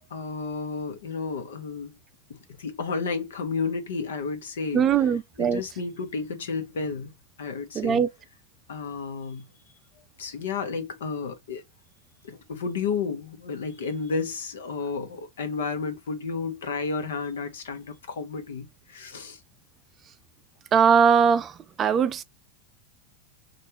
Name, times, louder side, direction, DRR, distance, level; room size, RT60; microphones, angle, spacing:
voice 1, 0.1-2.0 2.3-7.1 7.4-8.0 8.7-9.4 10.2-11.6 12.2-19.4, left 4 dB, 80° left, 0.9 m, -32 dB
voice 2, 4.7-5.6 7.8-8.1 20.7-21.5 21.8-22.2, right 7 dB, 30° right, 0.4 m, -20 dB
3.2 x 2.5 x 2.7 m
hypercardioid pair, 110°, 0 cm